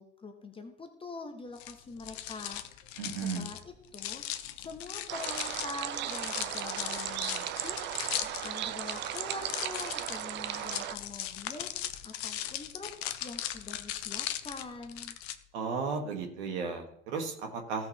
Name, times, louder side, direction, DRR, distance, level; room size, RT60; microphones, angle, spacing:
voice 1, 0.0-2.9 3.3-4.2 4.6-15.2, left 3 dB, 15° left, 5 dB, 1.1 m, -45 dB
sound 1, 1.6-15.4, left 12 dB, 50° left, 0.8 m, -38 dB
voice 2, 3.0-3.5 15.5-17.9, right 5 dB, 55° right, 3 dB, 2.1 m, -34 dB
sound 2, 5.1-11.0, right 11 dB, 30° right, 0.6 m, -36 dB
15.5 x 5.8 x 3.3 m, 0.69 s
figure-of-eight pair, 80°, 40 cm